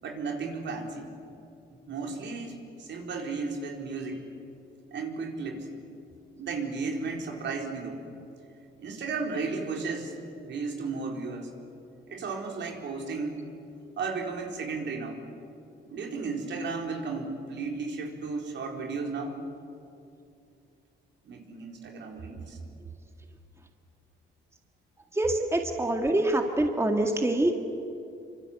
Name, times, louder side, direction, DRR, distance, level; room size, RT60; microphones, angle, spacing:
voice 1, 0.0-1.1 1.7-4.3 4.9-5.7 6.4-8.0 8.8-11.5 12.1-13.4 14.0-15.2 15.9-19.4 21.2-22.6, right 4 dB, 65° right, 2 dB, 4.3 m, -34 dB
voice 2, 25.1-27.5, right 1 dB, 15° right, 3 dB, 2.1 m, -25 dB
26.5 x 25.0 x 8.1 m, 2.7 s
cardioid pair, 90°, 20 cm